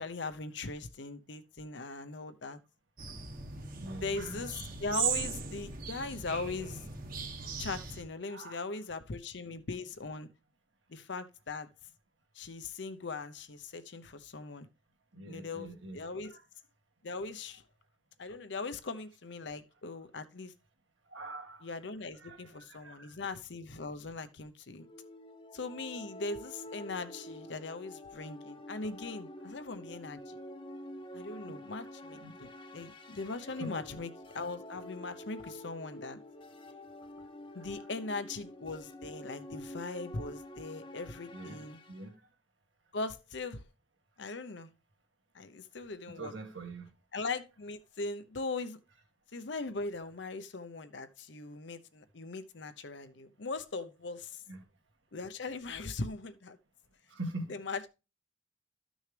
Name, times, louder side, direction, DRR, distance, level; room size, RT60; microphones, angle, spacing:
voice 1, 0.0-2.6 4.0-6.9 7.6-10.3 10.9-11.7 12.3-14.7 15.2-16.4 17.0-17.6 18.2-20.5 21.6-24.9 25.5-30.4 31.1-36.2 37.5-41.8 42.9-43.6 44.2-44.7 45.3-46.3 47.1-48.8 49.3-54.4 55.1-56.6 57.5-57.9, left 3 dB, 65° left, 0.8 m, -40 dB
sound 1, 3.0-8.0, right 6 dB, 45° right, 1.3 m, -38 dB
voice 2, 3.7-4.4 8.3-8.6 15.1-16.0 16.3-16.4 21.1-21.7 22.2-23.1 32.2-32.3 33.6-33.7 41.3-41.6 41.9-42.1 46.2-46.9 54.5-54.6 57.1-57.5, right 2 dB, 75° right, 1.9 m, -43 dB
sound 2, 24.8-42.1, left 1 dB, 25° left, 0.8 m, -48 dB
13.0 x 6.3 x 3.3 m
head